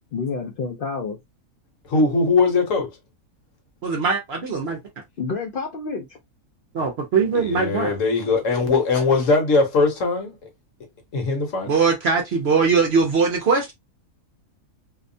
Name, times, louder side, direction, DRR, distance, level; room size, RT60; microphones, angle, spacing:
voice 1, 0.1-1.2 5.2-6.2, left 4 dB, 80° left, 0.4 m, -29 dB
voice 2, 1.9-2.9 7.3-10.3 11.1-11.7, left 3 dB, 60° left, 1.2 m, -20 dB
voice 3, 3.8-4.8 6.7-8.0 11.7-13.7, right 5 dB, 60° right, 0.7 m, -21 dB
2.7 x 2.1 x 2.6 m
omnidirectional pair, 1.5 m